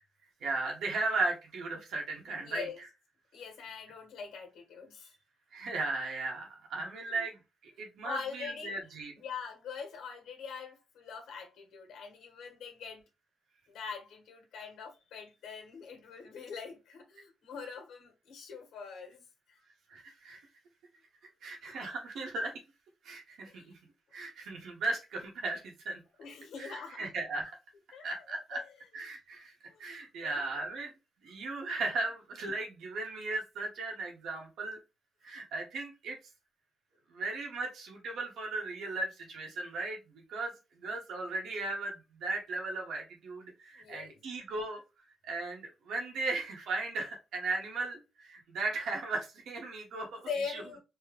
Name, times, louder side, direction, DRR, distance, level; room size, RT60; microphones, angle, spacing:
voice 1, 0.4-2.7 5.5-7.4 7.8-9.1 19.9-20.4 21.4-22.5 23.0-23.8 24.1-26.0 26.6-27.5 28.0-28.6 28.9-29.5 29.8-30.9 31.2-34.8 35.2-36.2 37.1-40.0 40.3-44.8 45.2-50.6, right 3 dB, 85° right, 1.6 m, -36 dB
voice 2, 2.2-2.8 3.3-5.1 7.1-7.2 7.8-8.7 9.2-13.0 13.7-19.6 23.5-23.7 26.2-27.1 27.9-28.6 29.7-30.4 43.7-44.2 50.3-50.8, left 6 dB, 90° left, 1.5 m, -43 dB
4.3 x 2.4 x 3.5 m
cardioid pair, 140°, 0 cm